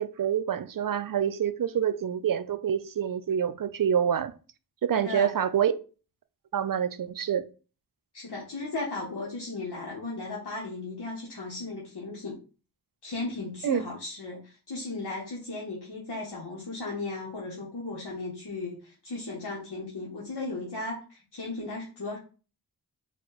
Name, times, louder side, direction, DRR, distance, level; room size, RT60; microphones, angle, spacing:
voice 1, 0.0-4.3 4.8-5.7 6.5-7.5 13.6-13.8, right 9 dB, 55° right, 0.5 m, -27 dB
voice 2, 4.9-5.3 8.1-12.4 13.0-22.2, left 3 dB, 80° left, 1.1 m, -36 dB
4.8 x 2.3 x 3.9 m
wide cardioid pair, 65°, 40 cm